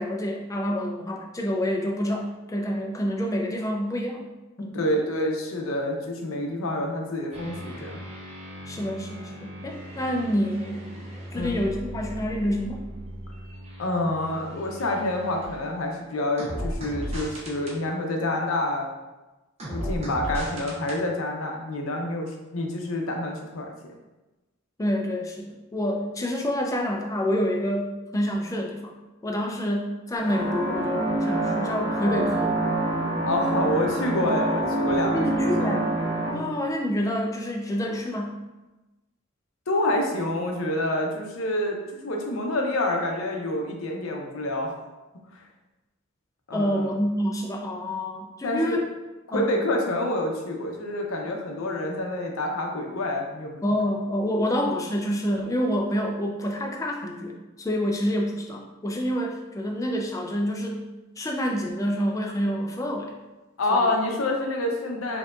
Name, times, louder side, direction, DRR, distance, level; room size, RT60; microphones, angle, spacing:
voice 1, 0.0-4.3 4.6-4.8 8.7-10.9 11.3-12.9 24.8-32.5 35.1-35.9 36.3-38.4 46.5-48.8 49.3-49.5 53.6-60.9 61.2-63.2 63.7-63.9, equal, 15° left, 1 dB, 0.4 m, -27 dB
voice 2, 4.7-8.0 11.3-11.6 13.8-18.9 19.7-23.9 33.2-35.3 35.6-35.7 36.3-36.6 39.7-44.9 46.5-46.9 48.4-48.8 49.3-53.6 63.6-65.2, left 1 dB, 85° left, 2 dB, 0.6 m, -27 dB
sound 1, 7.3-15.9 16.4-17.8 19.6-21.0, equal, 30° right, 0.7 m, -37 dB
sound 2, 30.2-36.3, right 1 dB, 65° right, 1.0 m, -26 dB
4.4 x 2.8 x 2.4 m, 1.1 s
head